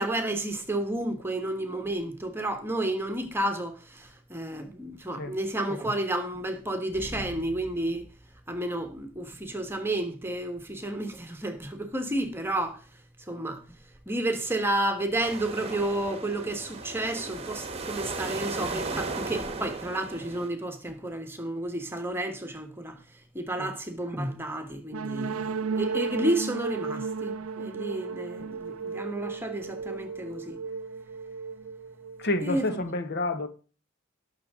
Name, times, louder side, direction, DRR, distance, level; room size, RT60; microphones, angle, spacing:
voice 1, 0.0-8.0 8.5-12.8 13.3-13.6 14.1-22.9 23.3-30.6 32.4-32.8, right 1 dB, 10° right, 1.4 m, -31 dB
sound 1, 15.2-20.5, right 3 dB, 30° right, 1.2 m, -36 dB
sound 2, 24.9-32.6, right 5 dB, 75° right, 0.5 m, -34 dB
voice 2, 32.2-33.5, left 2 dB, 50° left, 1.0 m, -29 dB
18.5 x 6.5 x 3.7 m
head